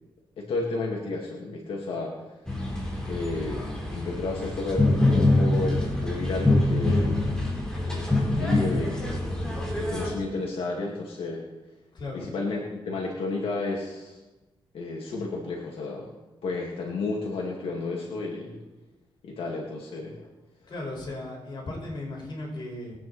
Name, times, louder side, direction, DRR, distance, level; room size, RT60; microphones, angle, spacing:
voice 1, 0.4-2.1 3.1-7.5 7.8-11.4 12.1-14.2 14.7-18.6 19.2-20.3, left 3 dB, 85° left, -2 dB, 2.5 m, -32 dB
sound 1, 2.5-10.1, left 2 dB, 5° left, 4.4 m, -25 dB
voice 2, 11.9-12.3 20.7-23.0, left 2 dB, 55° left, -3 dB, 5.6 m, -36 dB
22.5 x 9.2 x 4.4 m, 1.1 s
wide cardioid pair, 115°, 9 cm